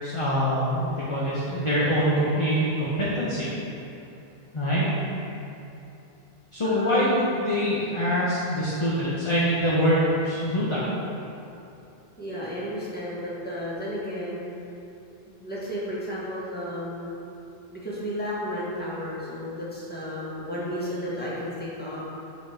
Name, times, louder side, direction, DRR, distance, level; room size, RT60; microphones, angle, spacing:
voice 1, 0.0-3.5 4.5-4.9 6.5-10.8, equal, 30° left, -8 dB, 0.9 m, -24 dB
voice 2, 6.6-7.1 12.2-14.4 15.3-17.1 17.7-22.0, equal, 10° left, -8 dB, 1.4 m, -33 dB
5.1 x 4.0 x 5.7 m, 2.8 s
omnidirectional pair, 1.0 m